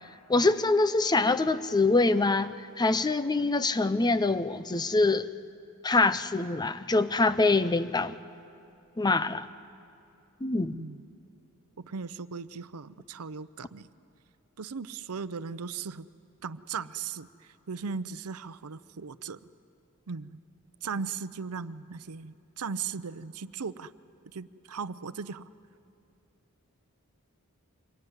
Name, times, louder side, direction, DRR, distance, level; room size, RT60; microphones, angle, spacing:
voice 1, 0.3-5.3 5.8-8.2 9.0-9.5 10.4-10.8, left 3 dB, 20° left, 13 dB, 0.6 m, -25 dB
voice 2, 10.7-11.1 11.8-13.9 14.6-16.1 16.4-19.4 20.1-20.4 20.8-23.9 24.3-25.5, right 5 dB, 90° right, 15 dB, 0.7 m, -37 dB
25.0 x 22.0 x 9.7 m, 2.5 s
head